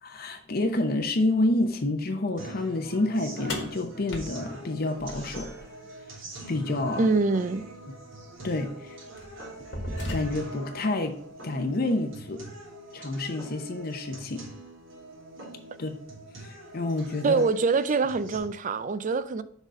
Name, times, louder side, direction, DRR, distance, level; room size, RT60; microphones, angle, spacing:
voice 1, 0.0-5.5 6.5-7.1 8.4-9.0 10.1-11.2 11.4-12.4 12.9-14.5 15.8-15.9 16.4-17.4, left 2 dB, 50° left, 0.7 m, -28 dB
sound 1, 2.4-18.4, right 2 dB, 80° right, 2.9 m, -44 dB
sound 2, 3.5-5.7 7.5-7.6 8.5-8.7 9.2-10.7, left 1 dB, 65° left, 1.6 m, -36 dB
voice 2, 7.0-7.6 17.2-19.4, right 4 dB, 40° right, 0.4 m, -24 dB
6.2 x 4.1 x 5.1 m
head